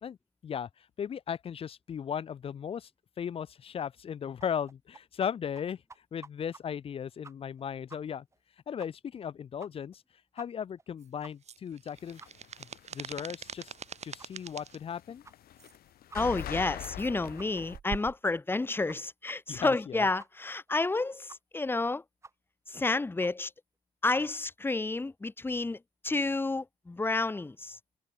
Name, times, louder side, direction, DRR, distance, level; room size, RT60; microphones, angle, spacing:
voice 1, 0.4-2.9 3.2-5.8 6.1-8.3 8.7-10.0 10.3-12.2 12.6-13.7 14.0-15.2 19.5-20.1, left 8 dB, 35° left, 0.5 m, -37 dB
sound 1, 4.4-5.3 5.6-5.7 5.9-6.6 6.9-7.0 7.2-7.6 7.9-8.0 8.3-8.4 8.8-8.9 9.2-9.3 9.6-10.0 10.4-10.5 10.8-10.9 11.2-11.3 11.7-11.8 12.2-12.3 12.7-12.8 13.2-13.3 13.7-13.8 14.2-14.3 14.7-14.8 15.2-15.4 15.7-15.8 16.1-16.4 16.7-16.8 17.0-17.1 17.4-17.7 18.0-18.2 18.5-18.6 18.9-19.0 19.3-19.4 19.7-19.8 20.2-20.3 20.7-20.8 21.3-21.4 21.7-21.8 22.2-22.3 22.7-22.8 23.2-23.3, right 3 dB, 15° right, 1.0 m, -51 dB
sound 2, 11.0-14.8 15.6-15.7 16.3-16.5 16.8-17.1 17.7-18.2, right 7 dB, 40° right, 2.1 m, -44 dB
sound 3, 12.1-13.2 13.5-17.8, left 12 dB, 65° left, 2.7 m, -42 dB
voice 2, 16.1-22.0 22.7-23.5 24.0-25.8 26.0-27.8, left 3 dB, 15° left, 1.0 m, -30 dB
cardioid pair, 110°, 17 cm